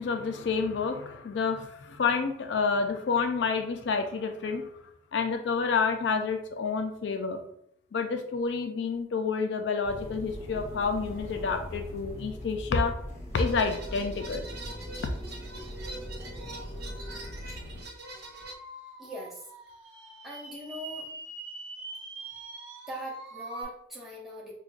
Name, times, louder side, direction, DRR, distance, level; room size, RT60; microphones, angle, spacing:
voice 1, 0.0-4.7 5.1-7.4 7.9-13.0 13.3-14.5, left 5 dB, 65° left, 6 dB, 0.4 m, -29 dB
sound 1, 9.8-17.8, equal, 35° left, 0.8 m, -40 dB
sound 2, 13.3-18.5, right 1 dB, 55° right, 0.7 m, -44 dB
sound 3, 18.0-23.6, right 2 dB, 70° right, 1.0 m, -43 dB
voice 2, 19.0-19.4 20.2-21.1 22.9-24.5, equal, ahead, -5 dB, 0.8 m, -41 dB
5.0 x 2.3 x 2.3 m, 0.73 s
head